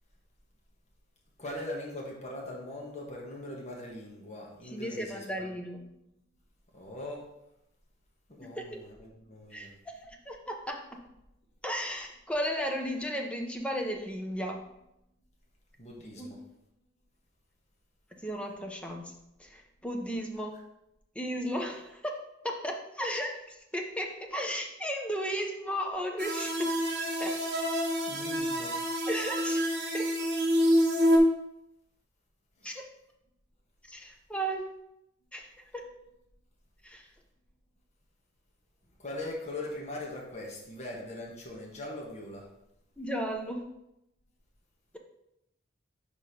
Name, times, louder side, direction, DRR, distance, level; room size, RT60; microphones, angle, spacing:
voice 1, 1.4-5.6 6.7-7.3 8.3-9.7 15.8-16.4 28.0-28.8 32.6-32.8 39.0-42.5, left 1 dB, 35° left, -2 dB, 1.5 m, -41 dB
voice 2, 4.6-5.8 8.5-8.9 9.5-10.8 11.6-14.6 16.2-16.3 18.2-19.1 19.4-20.5 21.1-22.2 22.4-26.7 27.2-27.3 29.1-29.6 29.9-30.1 32.6-32.8 33.9-34.7 35.3-35.5 35.7-35.8 36.8-37.1 43.0-43.6, equal, 5° left, 2 dB, 0.8 m, -35 dB
sound 1, 26.2-31.2, equal, 60° right, 1.3 m, -27 dB
5.2 x 4.9 x 5.2 m, 0.84 s
head